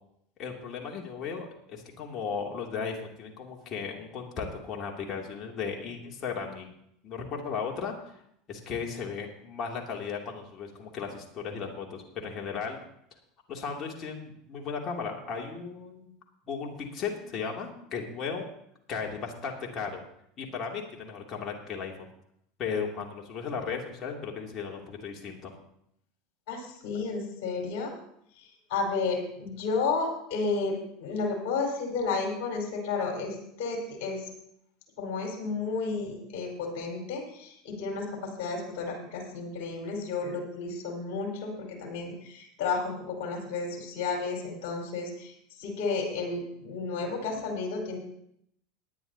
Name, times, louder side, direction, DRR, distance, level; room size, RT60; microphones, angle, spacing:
voice 1, 0.4-6.7 7.0-8.1 8.5-12.8 13.5-16.1 16.5-18.4 18.9-20.0 20.4-22.1 22.6-25.5, left 5 dB, 40° left, 1 dB, 2.9 m, -36 dB
voice 2, 26.5-27.9 28.4-30.7 31.0-34.3 35.0-45.3 45.6-48.0, left 4 dB, 65° left, 0 dB, 4.9 m, -32 dB
18.5 x 10.5 x 2.9 m, 0.72 s
hypercardioid pair, 85°, 0 cm